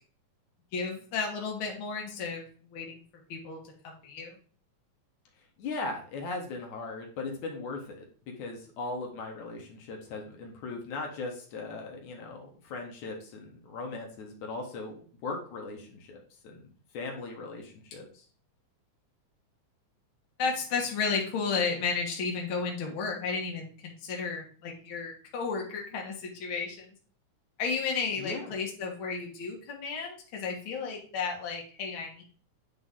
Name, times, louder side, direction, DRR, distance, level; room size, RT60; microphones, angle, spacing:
voice 1, 0.7-2.5 2.7-3.0 3.3-4.3 20.4-26.9 27.6-32.2, left 5 dB, 50° left, -1 dB, 2.1 m, -33 dB
voice 2, 5.6-8.0 8.4-18.2 28.2-28.5, left 3 dB, 75° left, 1 dB, 2.5 m, -38 dB
9.2 x 4.0 x 3.7 m, 0.43 s
omnidirectional pair, 3.5 m